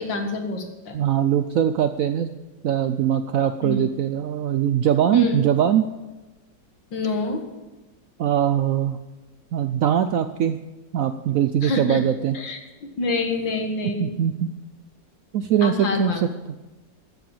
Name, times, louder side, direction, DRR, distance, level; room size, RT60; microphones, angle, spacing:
voice 1, 0.0-1.0 3.6-3.9 5.1-5.4 6.9-7.5 11.6-12.0 12.3-12.6 13.0-14.1 15.6-16.2, left 3 dB, 85° left, 4 dB, 2.4 m, -26 dB
voice 2, 0.9-2.3 2.6-5.9 8.2-9.0 9.5-10.6 10.9-12.4 14.0-14.5 15.3-16.3, right 10 dB, 75° right, 10 dB, 0.8 m, -21 dB
13.0 x 7.7 x 7.2 m, 1.1 s
omnidirectional pair, 2.0 m